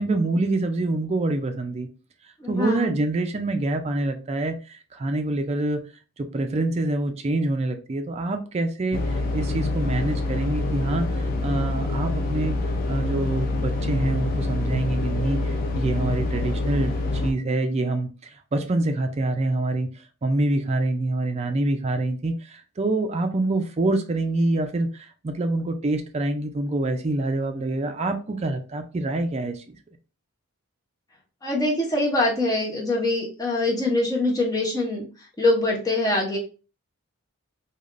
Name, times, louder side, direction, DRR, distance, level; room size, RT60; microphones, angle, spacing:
voice 1, 0.0-1.9 2.5-5.8 6.2-12.6 12.9-19.9 20.2-29.6, right 2 dB, 30° right, 0.4 m, -26 dB
voice 2, 2.4-2.9 31.4-35.0 35.4-36.4, left 2 dB, 15° left, 0.8 m, -23 dB
sound 1, 8.9-17.3, left 2 dB, 40° left, 0.4 m, -26 dB
3.3 x 2.4 x 2.4 m
head